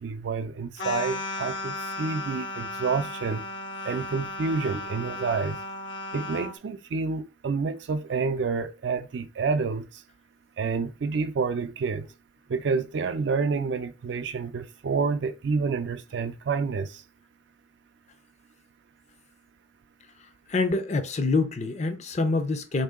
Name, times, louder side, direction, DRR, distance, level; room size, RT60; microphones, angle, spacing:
voice 1, 0.0-3.4 3.8-5.6 6.1-10.0 10.6-12.1 12.5-17.0, right 4 dB, 70° right, 0.4 m, -28 dB
sound 1, 0.8-6.6, left 2 dB, 85° left, 1.0 m, -35 dB
voice 2, 20.5-22.8, left 3 dB, 35° left, 0.5 m, -26 dB
3.6 x 2.7 x 3.6 m
head